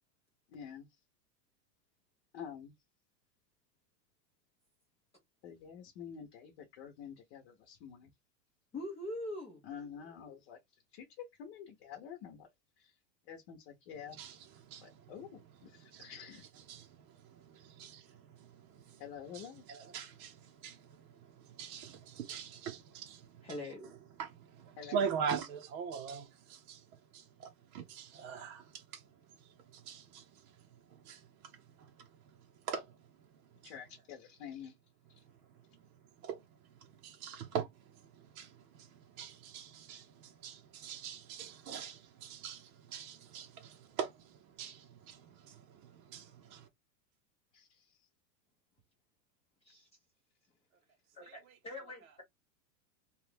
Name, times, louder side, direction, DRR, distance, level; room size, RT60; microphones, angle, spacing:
voice 1, 0.5-0.9 2.3-2.7 5.4-8.1 9.6-10.6 10.9-12.5 12.8-12.9 13.3-14.2 14.8-16.4 19.0-19.6 24.8-25.0 33.6-34.7 35.1-35.2 47.5-48.0, left 8 dB, 40° left, 0.8 m, -48 dB
voice 2, 8.7-9.6 23.4-23.9 49.6-49.9 51.1-52.2, left 1 dB, 15° left, 0.6 m, -43 dB
voice 3, 14.1-15.1 15.8-16.4 16.7-19.0 19.3-23.5 24.2-26.9 27.1-33.3 33.6-33.7 36.2-46.7 51.2-51.4, right 7 dB, 60° right, 0.8 m, -43 dB
2.9 x 2.3 x 3.3 m
supercardioid pair, 160°, 49 cm